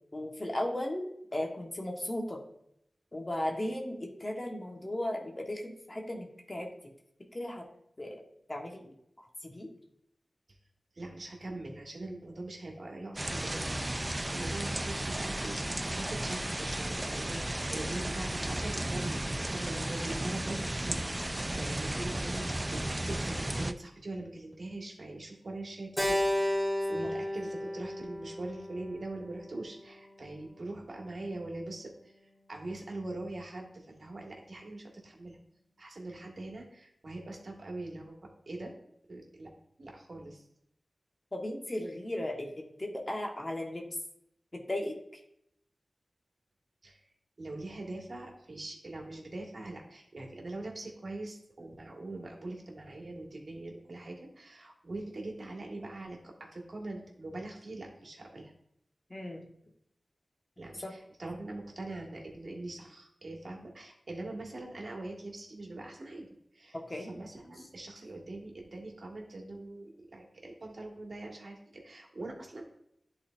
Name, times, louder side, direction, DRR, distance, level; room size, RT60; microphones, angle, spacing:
voice 1, 0.1-2.4 3.1-6.7 7.3-7.7 8.0-8.2 8.5-8.9 9.4-9.7 41.3-43.9 44.7-45.2 59.1-59.5 60.8-60.9 66.7-67.1, left 1 dB, 35° left, 0 dB, 1.2 m, -36 dB
voice 2, 10.9-13.7 14.0-26.2 26.9-35.4 35.8-38.7 39.1-39.5 39.8-40.5 46.8-47.0 47.4-58.5 60.6-72.6, right 2 dB, 65° right, 0 dB, 1.6 m, -42 dB
sound 1, 13.2-23.7, right 1 dB, 25° right, 0.4 m, -34 dB
Keyboard (musical), 26.0-30.4, left 1 dB, 5° left, 2.1 m, -33 dB
10.5 x 4.1 x 2.5 m, 0.76 s
cardioid pair, 50°, 0 cm